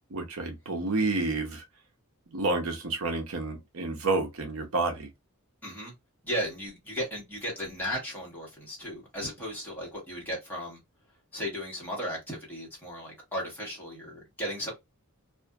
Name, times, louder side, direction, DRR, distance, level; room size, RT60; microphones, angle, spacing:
voice 1, 0.1-1.6 2.3-5.1, right 3 dB, 65° right, 0.7 m, -29 dB
voice 2, 5.6-5.9 6.2-10.8 11.3-14.7, equal, 10° left, 1.2 m, -35 dB
2.5 x 2.5 x 2.3 m
head